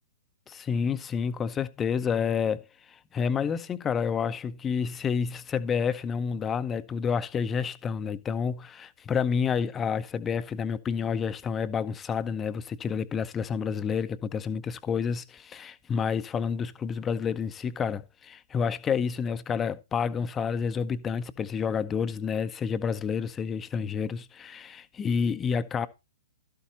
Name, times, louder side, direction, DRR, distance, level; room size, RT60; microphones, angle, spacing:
voice 1, 0.5-2.6 2.9-25.9, left 6 dB, 20° left, 0.7 m, -29 dB
12.5 x 8.3 x 2.8 m
figure-of-eight pair, 115°, 0 cm